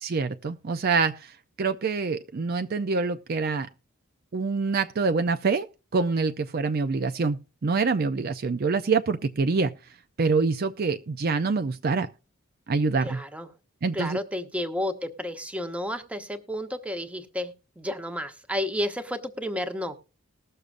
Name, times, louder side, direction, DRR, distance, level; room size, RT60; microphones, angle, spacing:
voice 1, 0.0-3.7 4.3-5.7 5.9-9.7 10.2-12.1 12.7-13.2 13.8-14.2, right 4 dB, 45° right, 0.5 m, -26 dB
voice 2, 13.0-13.5 13.9-20.0, left 1 dB, 5° right, 0.9 m, -31 dB
19.5 x 6.7 x 2.5 m
head